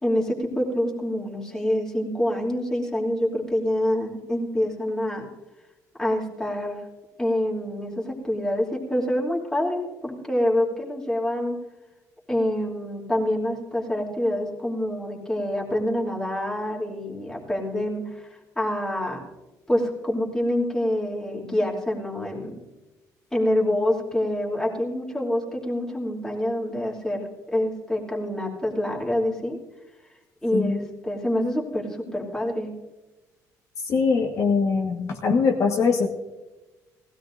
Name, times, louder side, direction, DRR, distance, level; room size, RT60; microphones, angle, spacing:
voice 1, 0.0-5.3 6.0-6.8 7.2-11.6 12.3-19.2 19.7-22.6 23.3-29.6 30.4-32.7, left 1 dB, 5° left, -3 dB, 2.9 m, -26 dB
voice 2, 33.8-36.1, left 5 dB, 45° left, 0 dB, 1.4 m, -22 dB
19.0 x 16.5 x 2.6 m, 1.1 s
cardioid pair, 150°, 7 cm